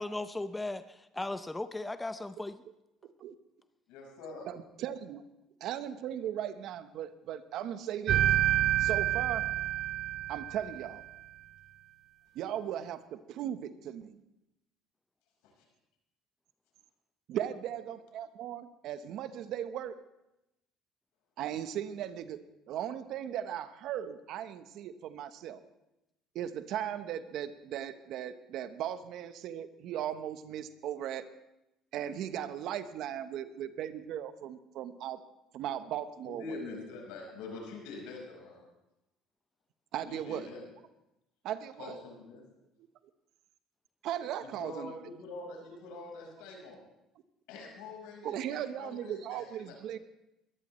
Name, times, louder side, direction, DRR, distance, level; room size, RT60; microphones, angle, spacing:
voice 1, 0.0-2.6, left 2 dB, 15° left, 11 dB, 0.6 m, -37 dB
voice 2, 3.0-3.3 4.5-5.3 5.6-8.4 8.8-9.5 10.3-11.0 12.3-14.2 17.3-20.0 21.4-25.6 26.3-31.3 31.9-35.2 35.5-36.6 39.9-40.5 41.4-42.0 44.0-44.9 48.2-50.0, right 10 dB, 65° right, 11 dB, 1.0 m, -37 dB
voice 3, 3.9-4.5 36.2-38.7 40.0-40.6 41.8-42.4 44.6-46.8 47.5-49.7, left 3 dB, 85° left, 0 dB, 4.9 m, -44 dB
sound 1, 8.1-11.0, right 12 dB, 50° right, 0.7 m, -28 dB
21.5 x 14.5 x 3.2 m, 0.90 s
supercardioid pair, 90°, 0 cm